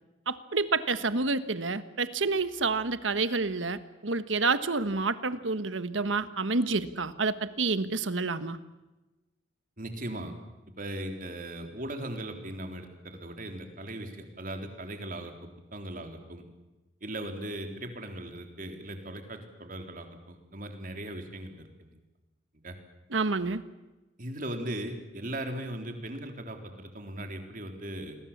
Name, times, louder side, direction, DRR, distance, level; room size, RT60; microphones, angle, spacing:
voice 1, 0.3-8.6 23.1-23.6, right 3 dB, 90° right, 12 dB, 1.4 m, -29 dB
voice 2, 9.8-10.4 10.8-15.3 15.7-16.4 17.0-22.0 22.6-22.7 24.2-28.2, right 1 dB, 45° right, 5 dB, 3.7 m, -38 dB
28.5 x 22.0 x 7.4 m, 1.1 s
head